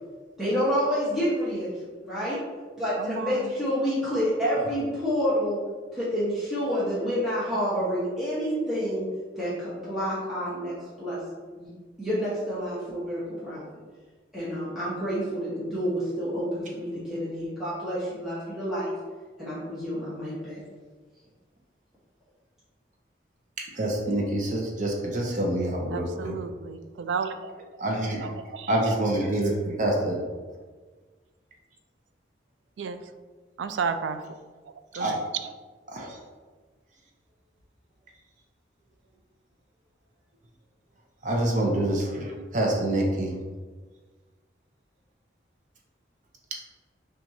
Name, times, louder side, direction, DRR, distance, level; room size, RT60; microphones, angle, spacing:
voice 1, 0.4-1.7 2.0-2.4 2.8-5.6 6.0-9.1 9.4-10.7 11.0-11.2 11.6-11.7 12.0-13.6 14.3-18.9 19.4-20.6, equal, ahead, 0.8 m, -28 dB
voice 2, 3.0-3.5 25.9-27.5 28.2-28.7 32.8-33.0 33.6-34.2 34.9-35.2 42.1-42.4, right 5 dB, 85° right, 0.3 m, -33 dB
voice 3, 23.6-26.3 27.8-28.3 28.7-30.2 35.0-35.2 35.9-36.2 41.2-43.3, right 1 dB, 40° right, 0.6 m, -26 dB
5.8 x 2.4 x 2.7 m
head